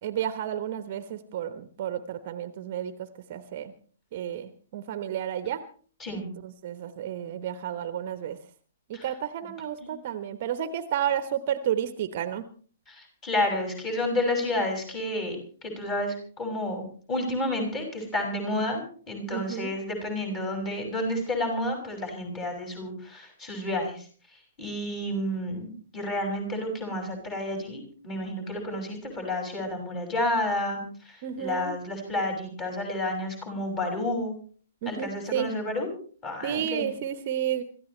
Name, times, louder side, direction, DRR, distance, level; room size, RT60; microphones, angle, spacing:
voice 1, 0.0-3.7 4.1-5.6 6.4-8.4 8.9-12.5 19.3-19.8 31.2-31.8 34.8-35.5 36.4-37.6, right 10 dB, 40° right, 11 dB, 1.1 m, -31 dB
voice 2, 12.9-15.4 15.6-24.1 24.3-25.7 25.9-34.4 34.9-35.9 36.2-36.9, left 1 dB, 20° left, 3 dB, 6.3 m, -30 dB
26.0 x 14.5 x 3.2 m, 0.43 s
figure-of-eight pair, 120°, 0 cm